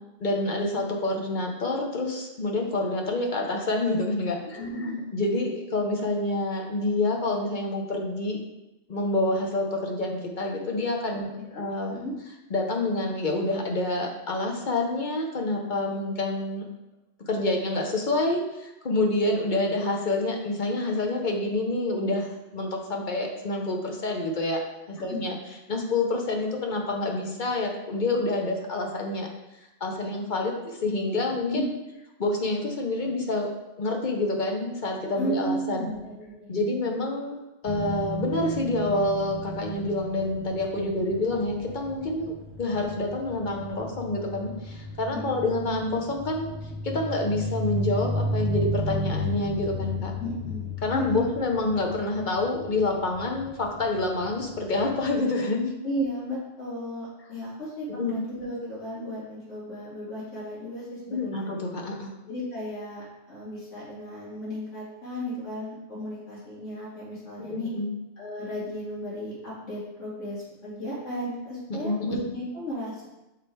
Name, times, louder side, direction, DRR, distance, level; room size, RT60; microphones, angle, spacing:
voice 1, 0.2-4.7 5.1-8.4 8.9-12.0 12.5-16.7 17.3-24.6 24.9-25.4 25.7-29.3 29.8-31.6 32.2-33.5 33.8-35.9 36.5-37.4 37.6-46.5 46.8-50.1 50.8-55.7 58.0-58.2 61.1-62.1 67.4-67.9 71.7-72.2, left 2 dB, 45° left, 1 dB, 0.9 m, -27 dB
voice 2, 4.6-5.1 11.1-11.2 11.5-11.6 11.9-12.1 25.0-25.2 31.5-31.7 35.1-36.9 45.1-45.4 50.2-51.2 55.8-61.5 62.3-67.7 68.2-73.1, equal, 80° left, -9 dB, 2.5 m, -34 dB
sound 1, 37.6-55.1, left 1 dB, 20° left, 0.4 m, -34 dB
6.9 x 3.3 x 4.4 m, 0.97 s
omnidirectional pair, 1.2 m